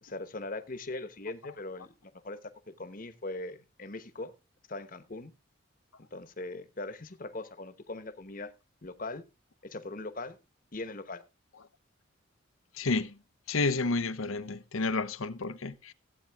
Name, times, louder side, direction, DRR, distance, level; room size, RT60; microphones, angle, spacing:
voice 1, 0.0-4.3 4.7-5.3 6.0-8.5 8.8-9.2 9.6-10.4 10.7-11.2, left 2 dB, 40° left, 1.1 m, -40 dB
voice 2, 12.8-13.1 13.5-15.9, left 3 dB, 85° left, 0.8 m, -30 dB
15.5 x 8.6 x 3.5 m
head